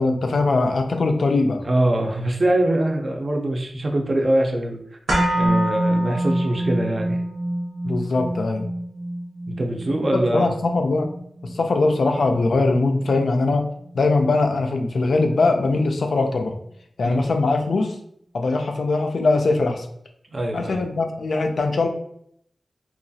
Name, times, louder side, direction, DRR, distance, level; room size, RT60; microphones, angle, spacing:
voice 1, 0.0-1.6 7.8-8.7 10.1-11.1 11.4-13.6 13.9-16.5 17.0-17.9 18.3-19.9 20.5-21.9, left 3 dB, 70° left, 4 dB, 0.4 m, -21 dB
voice 2, 1.6-4.8 5.4-7.2 9.5-10.5 17.0-17.2 20.3-20.8, right 1 dB, 40° right, 2 dB, 0.5 m, -23 dB
sound 1, 5.1-13.2 13.5-13.6, right 1 dB, 85° right, 0.8 m, -26 dB
2.8 x 2.3 x 2.7 m, 0.68 s
wide cardioid pair, 115°, 0 cm